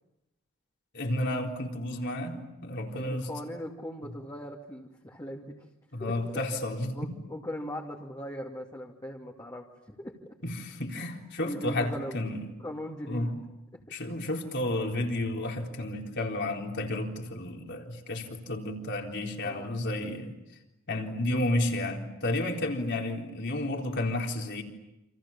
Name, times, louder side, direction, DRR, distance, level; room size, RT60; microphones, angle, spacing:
voice 1, 0.9-3.3 5.9-7.0 10.4-12.5 13.1-13.3 13.9-20.3 20.9-24.6, left 1 dB, 55° left, 1 dB, 4.1 m, -31 dB
voice 2, 2.9-5.6 6.0-6.2 6.9-10.2 11.4-12.2 12.6-13.3 13.7-13.9 19.4-19.7, equal, 20° left, -2 dB, 2.5 m, -39 dB
29.0 x 27.5 x 7.3 m, 0.92 s
head